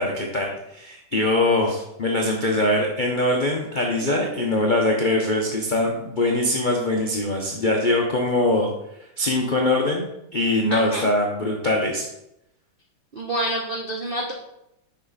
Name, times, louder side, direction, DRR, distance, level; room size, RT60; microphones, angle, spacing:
voice 1, 0.0-8.7 9.2-10.1 10.3-12.1, left 2 dB, 70° left, 0 dB, 0.4 m, -22 dB
voice 2, 10.7-11.1 13.1-14.3, right 1 dB, 75° right, 0 dB, 0.5 m, -27 dB
6.3 x 5.5 x 4.1 m, 0.83 s
omnidirectional pair, 2.2 m